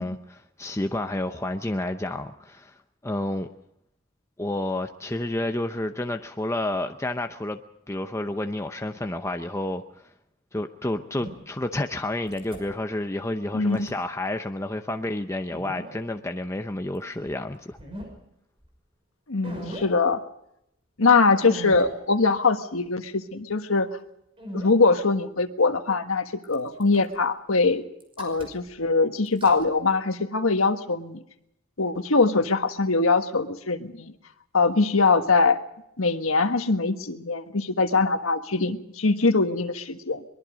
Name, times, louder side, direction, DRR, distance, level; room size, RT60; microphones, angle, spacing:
voice 1, 0.0-2.7 3.0-3.5 4.4-7.6 7.9-10.1 10.5-17.8, left 1 dB, 15° left, 6 dB, 0.8 m, -30 dB
sound 1, 11.2-11.3 12.3-12.6 13.5-13.9 15.5-15.9 17.3-17.4 17.7-18.1 18.6-18.7 19.4-19.9 21.4-21.9 22.4-22.5 24.4-24.7 26.4-27.2 28.0-28.8 29.3-29.7, right 1 dB, 25° right, 5.7 m, -38 dB
voice 2, 13.5-13.9 19.3-20.2 21.0-23.9 24.5-27.8 28.2-31.2 31.8-34.1 34.5-35.6 36.0-40.2, left 3 dB, 90° left, 7 dB, 1.5 m, -22 dB
23.0 x 22.0 x 5.2 m, 0.78 s
head